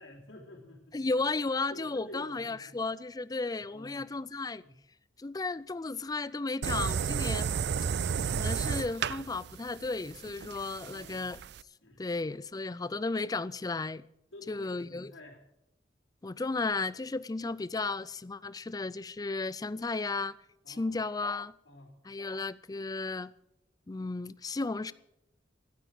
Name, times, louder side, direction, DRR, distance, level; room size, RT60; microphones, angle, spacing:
voice 1, 0.0-1.0 1.7-2.8 3.4-4.1 4.6-4.8 10.8-11.3 11.8-12.0 14.3-15.4 20.6-20.9 21.7-22.0, left 1 dB, 80° left, 3.5 m, -50 dB
voice 2, 0.9-4.6 5.2-7.5 8.3-11.4 12.0-14.0 14.5-15.1 16.2-20.4 20.7-21.5 22.1-23.3 23.9-24.9, left 3 dB, 20° left, 0.4 m, -34 dB
sound 1, 6.6-11.6, right 6 dB, 65° right, 0.4 m, -32 dB
13.0 x 9.9 x 7.9 m
head